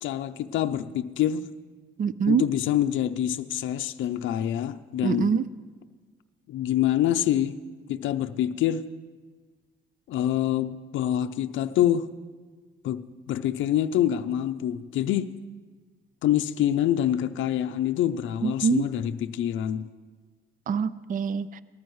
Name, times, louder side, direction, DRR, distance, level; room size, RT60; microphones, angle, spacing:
voice 1, 0.0-1.5 2.3-5.3 6.5-7.6 7.9-8.8 10.1-12.1 12.8-13.0 13.3-15.3 16.2-19.9, left 11 dB, 75° left, 0.5 m, -26 dB
voice 2, 2.0-2.4 5.0-5.5 18.4-18.8 20.7-21.6, right 6 dB, 45° right, 0.5 m, -24 dB
19.0 x 14.0 x 3.1 m
cardioid pair, 90°, 20 cm